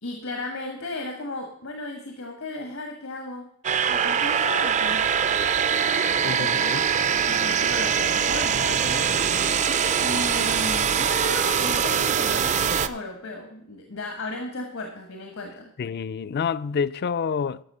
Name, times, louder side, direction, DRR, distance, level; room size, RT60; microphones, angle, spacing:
voice 1, 0.0-3.5 3.9-5.2 7.3-9.1 10.0-15.7, left 2 dB, 85° left, 1.4 m, -35 dB
sound 1, 3.6-12.9, right 7 dB, 35° right, 0.4 m, -23 dB
sound 2, 4.8-10.4, right 1 dB, 75° right, 2.0 m, -47 dB
voice 2, 6.2-6.9 15.8-17.6, left 6 dB, 50° left, 0.3 m, -28 dB
12.0 x 6.6 x 5.5 m
head